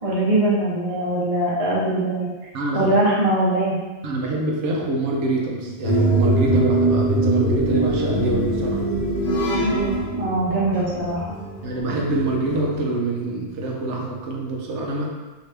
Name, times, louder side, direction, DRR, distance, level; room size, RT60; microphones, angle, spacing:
voice 1, 0.0-2.3 2.7-3.8 10.1-11.4, right 1 dB, 35° right, -7 dB, 0.7 m, -21 dB
voice 2, 2.5-2.9 4.0-8.8 11.6-15.1, right 2 dB, 70° right, -1 dB, 0.9 m, -25 dB
sound 1, 5.8-12.7, right 1 dB, 60° left, 0.9 m, -22 dB
2.9 x 2.7 x 3.2 m, 1.3 s
omnidirectional pair, 1.3 m